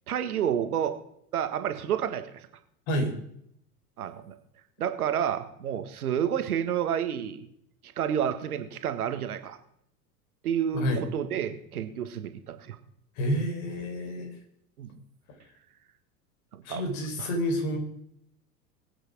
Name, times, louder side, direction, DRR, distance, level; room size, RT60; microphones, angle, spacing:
voice 1, 0.1-1.0 1.3-2.5 4.0-4.4 4.8-7.5 7.8-9.6 10.4-12.8 14.8-14.9 16.5-16.8 17.2-17.3, right 9 dB, 70° right, 9 dB, 1.7 m, -30 dB
voice 2, 13.2-14.4 16.6-17.8, equal, 50° left, 4 dB, 4.7 m, -29 dB
21.5 x 8.9 x 5.0 m, 0.72 s
figure-of-eight pair, 80°, 46 cm